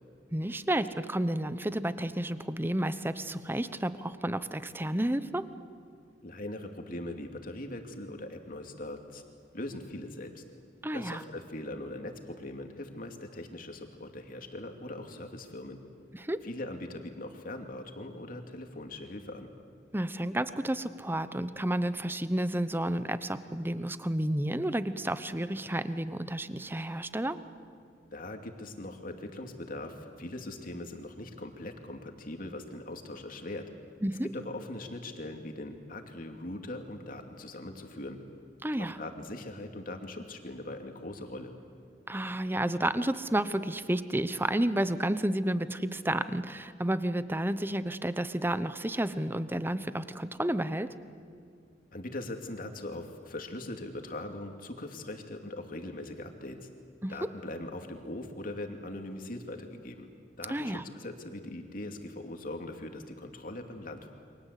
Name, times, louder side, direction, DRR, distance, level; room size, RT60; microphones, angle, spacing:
voice 1, 0.3-5.4 10.8-11.2 16.1-16.4 19.9-27.4 34.0-34.3 38.6-39.0 42.1-50.9 57.0-57.1 60.5-60.8, right 1 dB, 10° right, 13 dB, 0.9 m, -31 dB
voice 2, 6.2-9.2 9.5-10.4 10.9-15.8 16.4-19.5 28.1-33.7 34.3-38.2 38.8-41.5 51.9-56.7 57.1-60.1 60.4-64.1, left 1 dB, 55° left, 4 dB, 2.7 m, -41 dB
29.5 x 24.0 x 8.4 m, 2.2 s
head